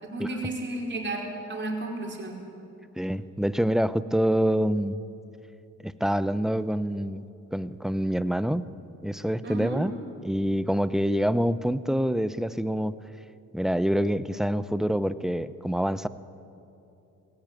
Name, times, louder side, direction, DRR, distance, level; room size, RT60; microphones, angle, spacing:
voice 1, 0.0-2.3 9.4-9.8, right 2 dB, 40° right, -1 dB, 5.0 m, -33 dB
voice 2, 3.0-5.0 5.8-8.6 9.0-9.9 10.2-13.0 13.5-16.1, equal, ahead, 14 dB, 0.7 m, -26 dB
20.0 x 17.0 x 9.1 m, 2.9 s
cardioid pair, 90°, 30 cm